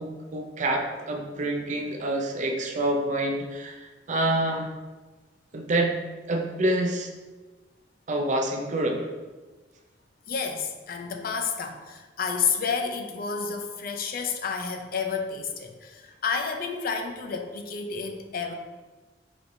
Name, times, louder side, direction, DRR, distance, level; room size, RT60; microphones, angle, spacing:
voice 1, 0.0-4.7 5.5-6.0 6.3-7.1 8.1-9.1, right 1 dB, 45° right, 3 dB, 0.5 m, -27 dB
voice 2, 10.3-18.5, left 5 dB, 55° left, 5 dB, 0.5 m, -30 dB
5.0 x 3.1 x 2.6 m, 1.3 s
head